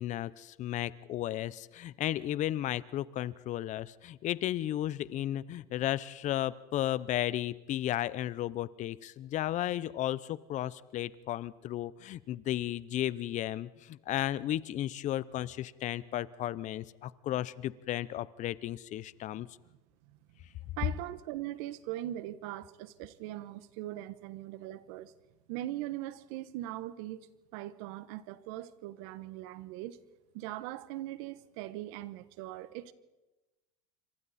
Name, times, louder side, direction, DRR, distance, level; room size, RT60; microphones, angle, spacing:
voice 1, 0.0-19.5, left 13 dB, 40° left, 0.8 m, -34 dB
voice 2, 20.8-25.1 25.5-30.0 30.3-32.9, right 14 dB, 70° right, 1.2 m, -40 dB
28.0 x 25.0 x 4.3 m
supercardioid pair, 125°, 19 cm